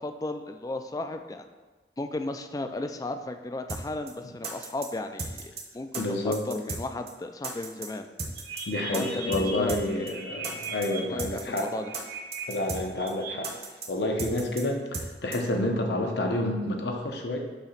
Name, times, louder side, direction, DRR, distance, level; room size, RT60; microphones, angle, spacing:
voice 1, 0.0-1.4 2.0-8.1 8.9-10.2 11.1-11.9, left 2 dB, 20° left, 7 dB, 0.3 m, -35 dB
sound 1, 3.7-3.8 4.1-4.2 4.4-4.9 5.2-5.6 5.9-6.0 6.3-6.8 7.1-7.2 7.4-7.9 8.2-8.6 8.9-9.0 9.3-9.4 9.7-9.8 10.1-10.2 10.4-10.9 11.2-11.6 11.9-12.0 12.3-12.8 13.1-13.2 13.4-13.9 14.2-14.6 14.9-15.1 15.3-15.4, right 3 dB, 35° right, 0.9 m, -35 dB
voice 2, 6.0-6.4 8.7-11.7 12.5-13.5 13.9-17.4, left 1 dB, 70° left, 2 dB, 0.9 m, -29 dB
sound 2, 8.4-11.0 11.6-12.4 12.7-13.3, right 5 dB, 65° right, 1.3 m, -38 dB
6.8 x 2.9 x 5.8 m, 1.2 s
head